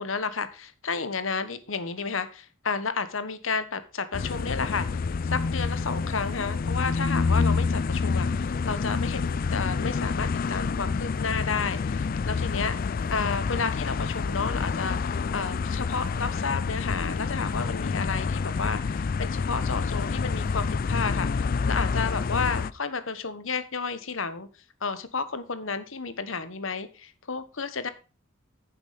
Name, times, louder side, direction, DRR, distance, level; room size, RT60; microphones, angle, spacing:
voice 1, 0.0-12.8 13.1-24.5 24.8-27.9, left 5 dB, 75° left, 12 dB, 1.2 m, -32 dB
sound 1, 4.1-22.7, left 4 dB, 45° left, 0.4 m, -28 dB
10.0 x 7.1 x 5.0 m, 0.33 s
head